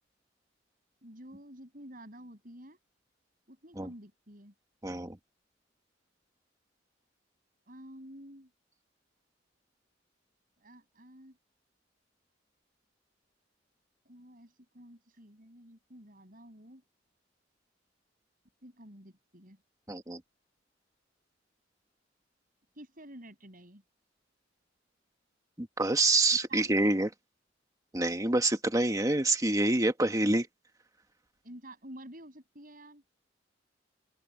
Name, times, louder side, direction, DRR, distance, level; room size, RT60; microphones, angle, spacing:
voice 1, 1.0-2.8 3.5-4.5 7.7-8.5 10.6-11.4 14.0-16.8 18.6-19.6 22.7-23.8 26.5-26.9 31.4-33.0, right 1 dB, 50° right, 7.5 m, -50 dB
voice 2, 4.8-5.2 19.9-20.2 25.6-27.1 27.9-30.5, right 2 dB, 20° right, 1.7 m, -27 dB
head